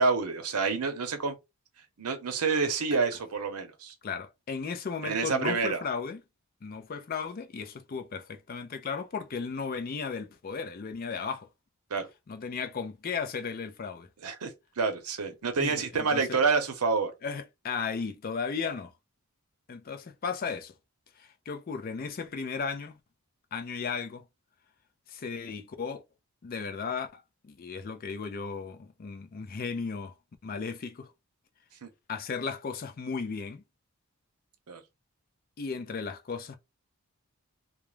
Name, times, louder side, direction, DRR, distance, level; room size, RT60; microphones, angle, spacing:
voice 1, 0.0-1.4 2.0-3.9 5.0-5.8 11.9-12.1 14.2-14.5 14.8-17.1 31.8-31.9 34.7-34.8, right 4 dB, 90° right, 0.7 m, -28 dB
voice 2, 4.0-6.2 6.6-11.5 12.3-14.1 15.6-16.4 17.2-18.9 19.7-20.7 21.2-23.0 23.5-24.2 25.1-26.0 26.4-30.1 30.4-31.1 32.1-33.6 35.6-36.6, left 5 dB, 40° left, 0.4 m, -35 dB
2.4 x 2.0 x 3.1 m
head